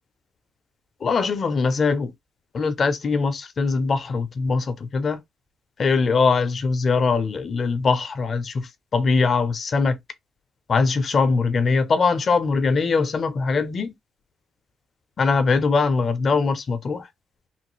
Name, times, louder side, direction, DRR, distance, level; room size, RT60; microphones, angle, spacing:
voice 1, 1.0-2.1 2.5-5.2 5.8-10.0 10.7-13.9 15.2-17.1, left 4 dB, 35° left, 0.5 m, -22 dB
3.0 x 2.3 x 3.0 m
cardioid pair, 175°, 0 cm